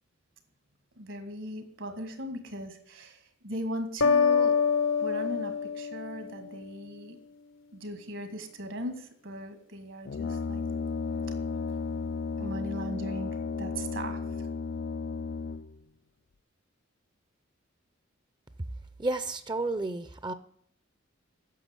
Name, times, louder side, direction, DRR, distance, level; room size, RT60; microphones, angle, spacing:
voice 1, 1.0-4.5 5.0-7.2 7.7-10.6 12.4-14.5, equal, 70° right, 7 dB, 2.0 m, -38 dB
sound 1, 4.0-6.8, left 6 dB, 75° left, 0.9 m, -26 dB
Brass instrument, 10.0-15.8, left 5 dB, 55° left, 0.4 m, -34 dB
voice 2, 19.0-20.3, right 2 dB, 20° right, 12 dB, 0.5 m, -31 dB
9.3 x 6.7 x 8.1 m, 0.68 s
head